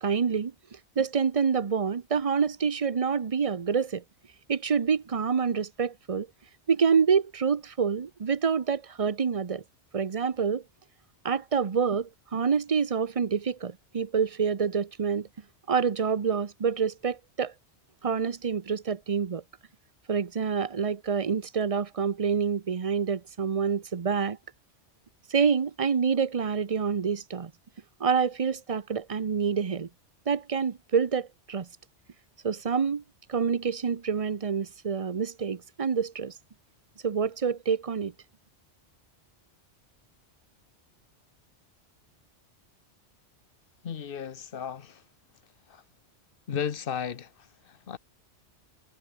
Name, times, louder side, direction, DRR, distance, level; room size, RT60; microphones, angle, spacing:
voice 1, 0.0-4.0 4.5-6.3 6.7-9.6 9.9-10.6 11.2-15.3 15.7-17.5 18.0-19.4 20.1-24.4 25.3-27.5 28.0-29.9 30.3-31.7 32.4-33.0 33.3-36.3 37.0-38.1, right 6 dB, 35° right, 0.8 m, -27 dB
voice 2, 43.8-45.0 45.7-45.8 46.5-48.0, left 7 dB, 55° left, 1.1 m, -35 dB
omnidirectional pair, 1.2 m